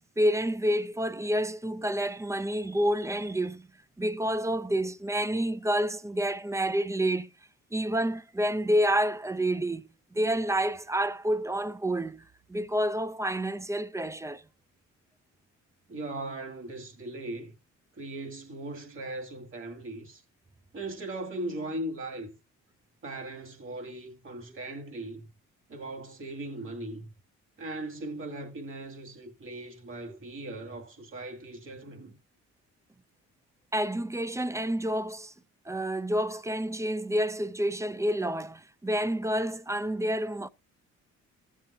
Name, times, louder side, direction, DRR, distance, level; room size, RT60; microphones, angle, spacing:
voice 1, 0.0-3.7 4.0-7.3 7.7-12.2 12.5-14.4 30.1-30.2 33.7-35.3 35.7-40.5, right 1 dB, 10° right, 0.4 m, -29 dB
voice 2, 15.9-17.5 18.0-20.2 20.7-22.3 23.0-25.2 25.7-27.1 27.6-32.2, right 2 dB, 45° right, 2.4 m, -38 dB
14.0 x 7.3 x 2.7 m
cardioid pair, 90°, 30 cm